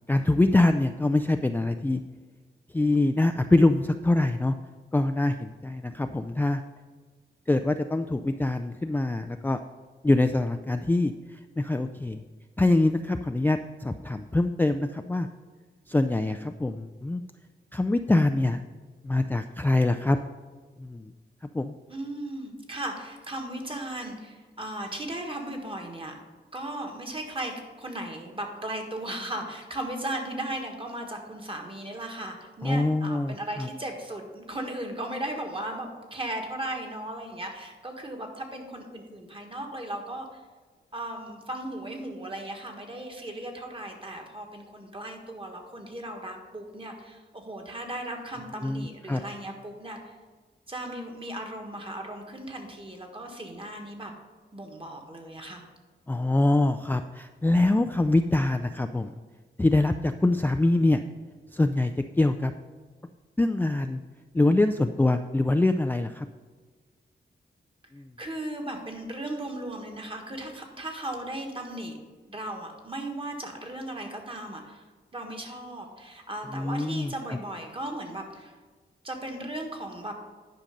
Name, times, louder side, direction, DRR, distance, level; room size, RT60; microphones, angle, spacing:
voice 1, 0.1-2.0 2.7-4.5 4.9-6.6 7.5-9.6 10.0-12.2 12.6-15.3 15.9-17.2 17.7-18.6 19.0-20.2 20.8-21.1 21.5-21.8 32.6-33.7 48.6-49.2 56.1-59.2 59.6-61.0 61.5-62.5 63.4-64.0 64.3-66.3 67.9-68.1 76.5-77.4, left 2 dB, 10° left, 7 dB, 0.3 m, -24 dB
voice 2, 21.9-26.1 26.5-40.4 40.9-50.2 50.7-54.1 54.5-55.6 68.2-72.0 72.3-74.8 75.1-78.5 79.0-80.1, right 1 dB, 30° right, 3 dB, 1.6 m, -36 dB
10.0 x 5.2 x 5.2 m, 1.4 s
wide cardioid pair, 90°, 19 cm